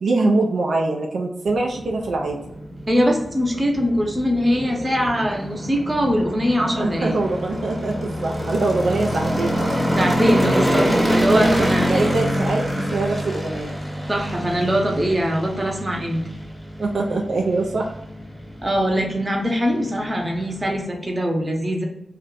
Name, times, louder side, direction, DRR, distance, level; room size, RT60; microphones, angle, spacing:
voice 1, 0.0-2.4 6.8-9.8 11.3-11.5 11.9-13.8 16.8-17.9, right 2 dB, 80° right, 0 dB, 0.4 m, -23 dB
Noisy truck, 1.5-20.8, equal, 5° right, 1.0 m, -26 dB
voice 2, 2.9-7.2 10.0-11.9 14.1-16.2 18.6-21.8, equal, 30° right, 1 dB, 0.8 m, -22 dB
2.5 x 2.2 x 3.8 m, 0.82 s
cardioid pair, 55°, 0 cm